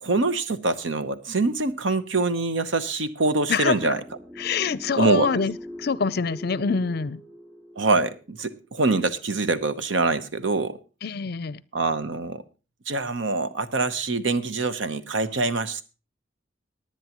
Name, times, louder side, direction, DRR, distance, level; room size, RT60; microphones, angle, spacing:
voice 1, 0.0-4.0 5.0-5.4 7.8-10.8 11.7-12.4 12.9-15.8, right 3 dB, 80° right, 11 dB, 0.9 m, -24 dB
voice 2, 3.5-4.0 4.4-5.5 5.8-7.2 11.0-11.6, left 5 dB, 55° left, 18 dB, 0.5 m, -25 dB
sound 1, 3.7-8.8, left 1 dB, 10° right, 5.6 m, -43 dB
18.5 x 10.0 x 3.0 m, 0.33 s
head